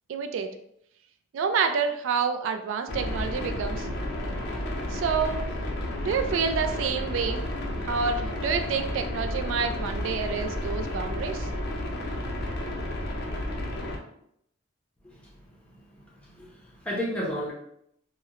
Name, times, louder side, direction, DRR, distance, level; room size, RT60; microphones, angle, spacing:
voice 1, 0.1-0.5 1.3-3.9 4.9-5.5 6.0-7.4 7.9-11.5, right 6 dB, 70° right, 7 dB, 0.3 m, -28 dB
sound 1, 2.9-14.0, left 1 dB, 55° left, 0.5 m, -31 dB
voice 2, 15.7-17.5, equal, 5° left, -5 dB, 0.5 m, -34 dB
2.8 x 2.1 x 2.4 m, 0.72 s
head